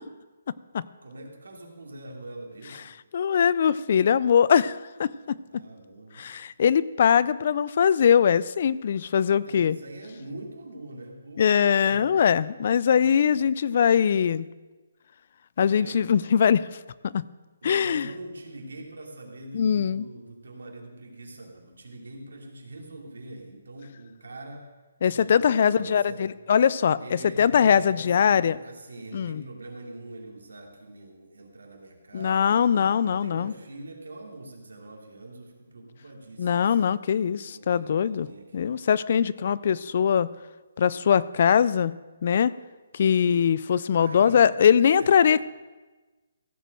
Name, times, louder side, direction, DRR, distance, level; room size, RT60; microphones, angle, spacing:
voice 1, 1.0-2.9 5.5-6.3 9.5-12.1 15.7-16.3 17.6-24.7 25.0-26.2 27.0-32.6 33.0-36.9 37.5-38.8 43.9-44.4 44.7-45.1, right 2 dB, 85° right, 1 dB, 2.7 m, -43 dB
voice 2, 3.1-5.6 6.2-9.8 11.4-14.5 15.6-16.6 17.0-17.2 17.6-18.1 19.5-20.1 25.0-28.6 29.1-29.4 32.1-33.5 36.4-38.3 38.5-40.3 40.8-41.9 42.2-42.5 42.9-45.4, left 7 dB, 50° left, 19 dB, 0.4 m, -22 dB
15.5 x 5.2 x 7.6 m, 1.2 s
hypercardioid pair, 160°, 0 cm